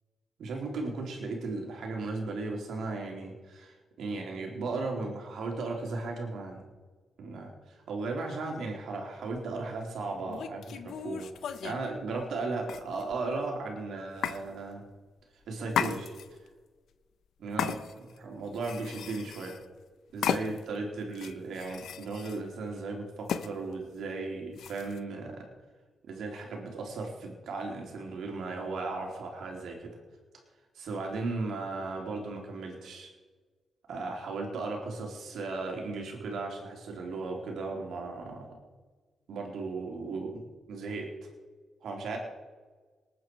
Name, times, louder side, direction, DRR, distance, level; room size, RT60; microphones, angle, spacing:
voice 1, 0.4-6.6 7.2-14.8 15.5-16.1 17.4-19.6 20.1-25.4 26.1-29.9 30.7-33.1 33.9-38.6 39.3-41.1 41.8-42.2, right 3 dB, 75° right, 1 dB, 3.4 m, -36 dB
sound 1, 9.3-9.5 10.3-11.8 12.6-13.3 14.2-14.4 15.7-16.5 17.6-18.2 18.5-19.6 20.2-20.8 21.1-22.4 23.3-23.5 24.6-25.0, left 8 dB, 75° left, 0.7 m, -35 dB
19.5 x 9.4 x 4.7 m, 1.4 s
supercardioid pair, 60°, 0 cm